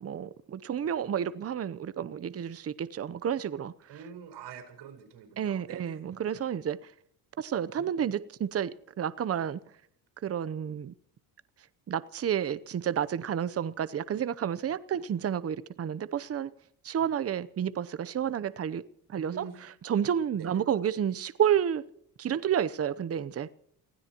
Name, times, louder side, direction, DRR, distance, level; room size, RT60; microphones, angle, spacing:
voice 1, 0.0-4.0 5.4-6.8 7.4-8.7 9.0-9.6 10.2-10.9 11.9-16.5 16.8-18.8 19.1-19.4 19.8-21.8 22.2-23.5, right 9 dB, 35° right, 16 dB, 0.8 m, -30 dB
voice 2, 3.9-6.0 19.2-19.5 20.3-20.6, right 7 dB, 65° right, 3 dB, 4.7 m, -45 dB
28.5 x 16.5 x 3.0 m, 0.68 s
supercardioid pair, 75°, 43 cm